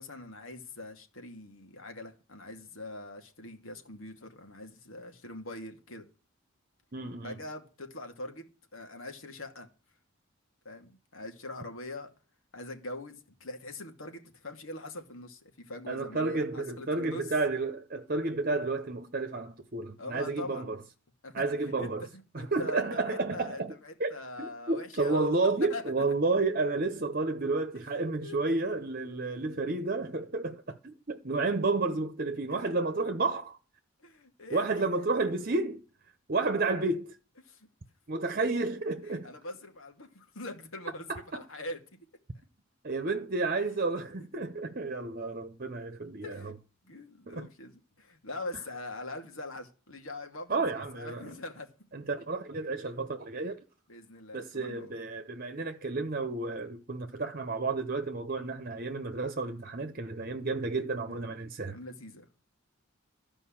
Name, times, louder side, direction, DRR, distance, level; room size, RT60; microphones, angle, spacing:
voice 1, 0.0-6.1 7.2-8.4 8.7-9.7 10.6-12.1 12.5-17.3 20.0-20.7 21.2-25.8 27.9-28.4 32.5-32.8 34.0-34.6 37.4-37.7 39.0-41.8 43.8-43.9 46.2-46.6 46.8-51.7 53.9-55.0 61.1-61.3 61.7-62.3, left 2 dB, 85° left, 2.5 m, -43 dB
voice 2, 6.9-7.4 15.9-20.8 21.3-22.1 22.3-23.7 24.0-33.6 34.5-35.8 36.3-37.1 38.1-39.3 41.1-41.4 42.8-46.5 47.3-47.5 50.5-51.3 51.9-53.6 54.3-61.8, right 3 dB, 45° right, 1.0 m, -31 dB
13.5 x 5.3 x 8.7 m
head